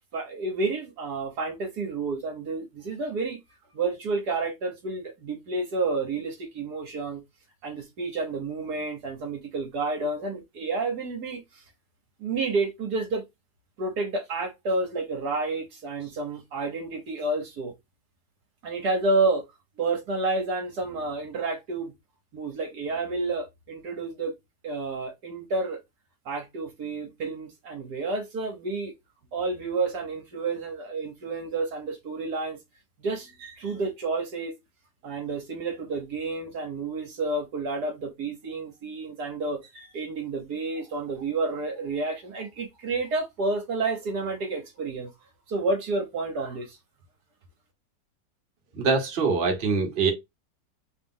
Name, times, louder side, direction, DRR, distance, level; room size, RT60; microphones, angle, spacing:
voice 1, 0.1-3.4 3.7-7.2 7.6-11.4 12.2-13.2 13.8-17.7 18.6-19.4 19.8-21.9 22.3-24.3 24.6-25.8 26.2-28.9 29.3-32.6 33.0-34.5 35.0-45.1 45.5-46.8, right 3 dB, 65° right, 1.7 m, -30 dB
voice 2, 48.8-50.1, right 4 dB, 40° right, 1.3 m, -24 dB
3.4 x 3.3 x 3.7 m
omnidirectional pair, 1.9 m